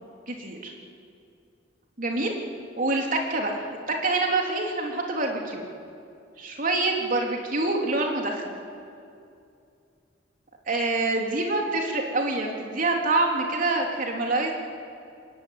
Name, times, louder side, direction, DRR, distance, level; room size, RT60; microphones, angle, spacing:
voice 1, 0.3-0.7 2.0-2.3 2.8-5.7 6.4-8.5 10.7-14.5, right 2 dB, 45° right, 1 dB, 3.5 m, -26 dB
25.0 x 20.5 x 9.6 m, 2.5 s
head